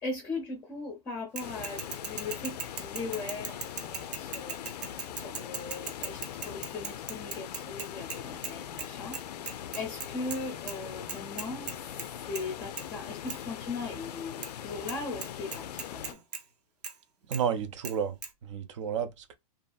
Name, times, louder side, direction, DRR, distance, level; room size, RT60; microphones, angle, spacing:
voice 1, 0.0-9.2 9.4-11.7 12.3-16.2, left 3 dB, 15° left, 0.6 m, -39 dB
sound 1, 1.4-16.1, left 10 dB, 85° left, 0.4 m, -41 dB
Bicycle / Mechanisms, 1.4-8.5 8.8-8.9 9.1-10.4 10.7-10.8 11.1-12.1 12.3-12.5 12.8-12.9 13.3-13.4 14.4-14.5 14.9-15.0 15.2-16.4 16.8-16.9 17.3-17.4 17.8-17.9 18.2-18.3, right 6 dB, 85° right, 0.8 m, -38 dB
voice 2, 17.3-19.4, right 7 dB, 50° right, 0.5 m, -32 dB
2.7 x 2.4 x 2.3 m
hypercardioid pair, 165°, 20 cm